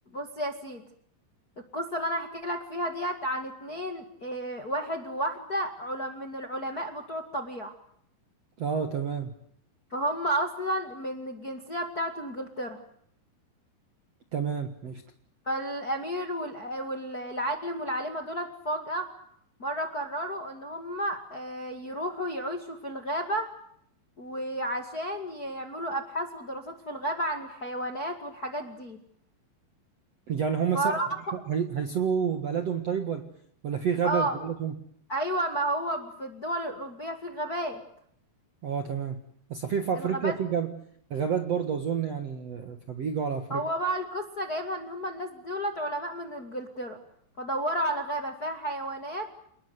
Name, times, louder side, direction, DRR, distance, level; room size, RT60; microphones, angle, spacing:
voice 1, 0.1-0.8 1.7-7.7 9.9-12.8 15.4-19.1 19.6-23.5 24.2-29.0 30.7-31.1 34.0-34.4 35.1-37.8 39.9-40.3 43.5-47.0 47.4-49.3, right 1 dB, 35° left, 5 dB, 1.7 m, -32 dB
voice 2, 8.6-9.3 14.3-15.0 30.3-31.0 31.3-33.2 33.6-34.7 38.6-39.2 39.5-40.7 41.1-43.6, right 7 dB, 55° right, 7 dB, 1.9 m, -29 dB
29.0 x 20.5 x 8.0 m, 0.67 s
omnidirectional pair, 5.2 m